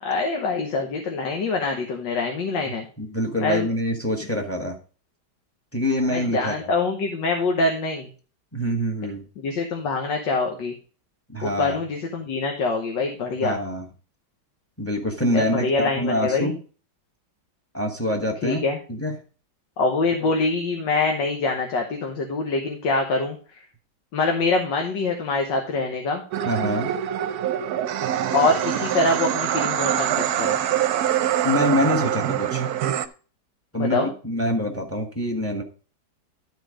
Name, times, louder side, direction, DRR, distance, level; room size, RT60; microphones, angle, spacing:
voice 1, 0.0-2.9 3.4-3.7 6.1-8.1 9.4-10.8 11.4-13.6 15.3-16.5 18.4-18.8 19.8-23.4 24.1-26.2 28.3-30.6 33.8-34.1, left 3 dB, 85° left, 3 dB, 1.9 m, -24 dB
voice 2, 3.0-4.8 5.7-6.7 8.5-9.2 11.3-11.8 13.4-13.9 14.8-16.6 17.7-18.6 18.9-19.2 20.2-20.3 26.4-26.9 31.4-32.6 33.7-35.6, equal, 10° left, 3 dB, 1.3 m, -25 dB
sound 1, 26.3-33.1, right 10 dB, 65° right, 1.1 m, -24 dB
12.0 x 4.5 x 5.0 m, 0.38 s
omnidirectional pair, 1.9 m